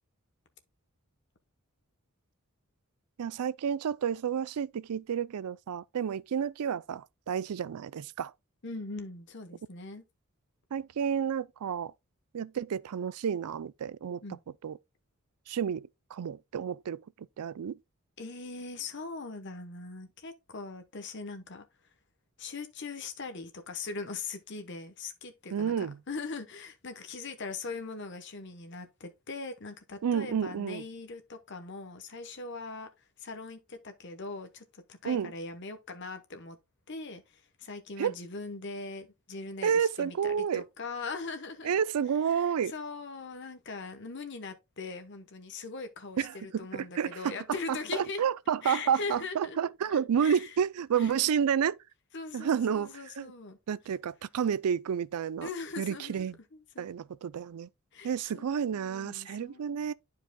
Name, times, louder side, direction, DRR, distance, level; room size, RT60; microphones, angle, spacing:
voice 1, 3.2-8.3 10.7-11.9 12.3-14.2 14.6-14.8 15.5-17.0 17.4-17.8 25.5-26.0 30.0-30.8 35.1-35.3 38.0-38.1 39.6-40.6 41.6-42.7 46.2-51.8 52.3-53.3 53.7-55.5 55.8-56.4 56.8-57.7 58.0-59.9, right 7 dB, 85° right, 0.4 m, -30 dB
voice 2, 8.6-10.0 14.2-14.4 18.2-21.6 22.4-32.9 33.2-36.6 36.9-41.8 42.3-48.2 48.6-49.6 49.9-50.5 51.0-51.1 52.1-53.6 55.4-56.9 57.9-59.9, left 4 dB, 50° left, 1.0 m, -41 dB
11.5 x 4.8 x 2.2 m
head